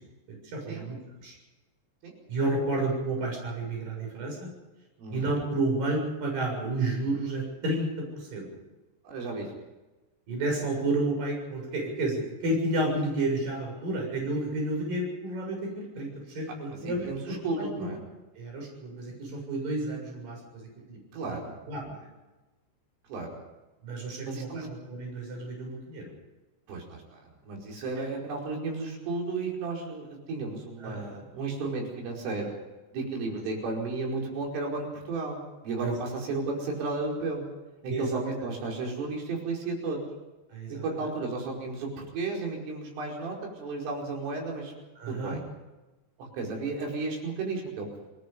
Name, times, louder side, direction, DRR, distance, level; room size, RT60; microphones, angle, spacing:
voice 1, 0.4-1.4 2.3-4.5 5.1-8.5 10.3-17.9 18.4-21.0 21.3-21.4 21.7-22.1 23.8-26.1 30.8-31.2 35.8-36.0 37.9-38.4 40.5-41.1 45.0-45.4, right 2 dB, 45° right, 0 dB, 8.6 m, -31 dB
voice 2, 9.1-9.5 16.8-18.0 21.1-21.6 23.1-23.3 24.2-24.7 26.7-32.5 32.9-37.5 37.8-40.0 40.8-44.7 45.1-45.4 46.2-47.9, right 3 dB, 85° right, 0 dB, 7.6 m, -33 dB
28.0 x 19.0 x 5.4 m, 1.1 s
omnidirectional pair, 5.6 m